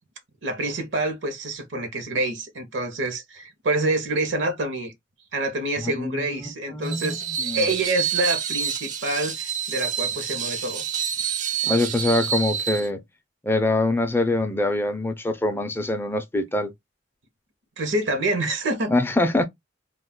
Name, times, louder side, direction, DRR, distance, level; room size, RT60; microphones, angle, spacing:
voice 1, 0.4-4.9 5.3-10.8 17.8-18.9, right 2 dB, 70° right, 0.8 m, -27 dB
voice 2, 5.8-7.7 11.6-13.0 13.4-16.7 18.9-19.4, left 2 dB, 10° left, 0.4 m, -24 dB
Screech, 6.8-12.9, right 8 dB, 40° right, 0.5 m, -28 dB
2.3 x 2.3 x 3.5 m
head